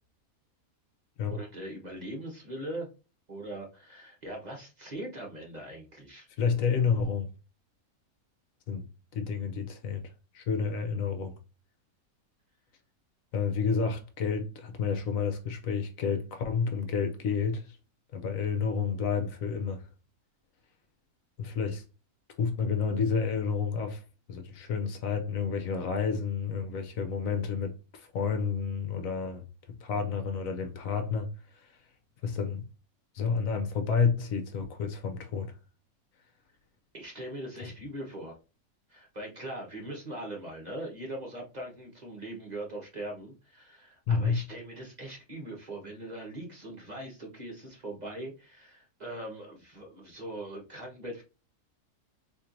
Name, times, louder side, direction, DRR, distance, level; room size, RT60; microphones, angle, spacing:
voice 1, 1.3-2.9 3.3-6.3 36.9-38.4 38.9-51.2, right 1 dB, 30° right, 1.1 m, -41 dB
voice 2, 6.4-7.3 8.7-8.9 9.1-10.0 10.3-11.4 13.3-17.8 18.1-19.8 21.4-21.8 22.4-24.0 24.3-31.8 32.2-32.6 33.1-35.5 37.6-37.7 44.1-44.4, left 5 dB, 70° left, 1.0 m, -30 dB
4.4 x 2.9 x 2.5 m
omnidirectional pair, 1.5 m